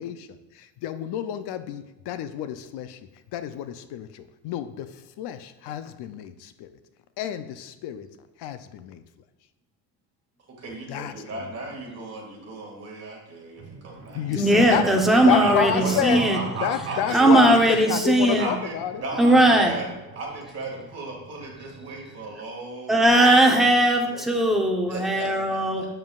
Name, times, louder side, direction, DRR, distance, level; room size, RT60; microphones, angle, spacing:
voice 1, 0.0-3.0 3.3-6.8 7.2-8.1 8.4-9.0 10.9-11.5 14.1-14.8 15.3-16.3 16.6-19.0, left 11 dB, 60° left, 12 dB, 0.6 m, -29 dB
voice 2, 10.6-14.8 15.3-17.7 18.4-18.7 19.0-19.9 20.1-23.5 24.1-24.2 24.9-25.9, right 2 dB, 35° right, -1 dB, 2.1 m, -35 dB
sound 1, 13.6-22.3, right 4 dB, 50° right, 2.5 m, -40 dB
voice 3, 14.4-16.4 17.1-18.5 19.2-19.8 22.9-25.8, right 1 dB, ahead, 0 dB, 0.8 m, -19 dB
7.8 x 7.3 x 2.4 m, 0.98 s
cardioid pair, 135°, 45 cm